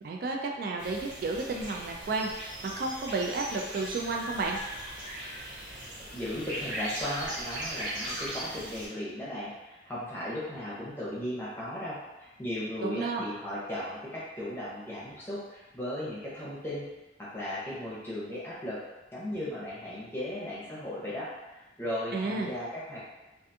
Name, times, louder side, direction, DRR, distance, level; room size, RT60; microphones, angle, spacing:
voice 1, 0.0-4.6 12.8-13.2 22.1-22.5, right 3 dB, 55° right, 1 dB, 0.3 m, -32 dB
sound 1, 0.8-8.9, right 1 dB, 75° right, 0.9 m, -39 dB
voice 2, 6.1-16.8 17.2-18.8 19.1-21.3 21.8-23.0, left 1 dB, 10° left, -8 dB, 0.7 m, -36 dB
2.5 x 2.3 x 2.6 m, 1.0 s
head